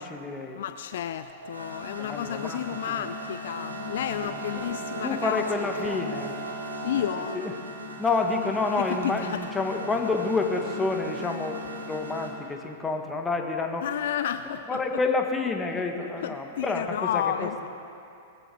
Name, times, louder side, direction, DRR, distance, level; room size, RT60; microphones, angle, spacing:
voice 1, 0.0-0.6 1.9-2.6 3.0-3.1 4.2-6.3 6.9-7.5 8.0-13.9 14.5-17.5, left 3 dB, 15° left, 3 dB, 1.5 m, -29 dB
voice 2, 0.5-5.4 5.8-6.0 6.5-7.4 8.8-9.4 13.8-14.8 16.2-17.7, left 10 dB, 60° left, 12 dB, 0.4 m, -31 dB
sound 1, 1.2-12.3, equal, 85° right, 1.6 m, -37 dB
21.0 x 15.0 x 3.5 m, 2.6 s
figure-of-eight pair, 100°, 0 cm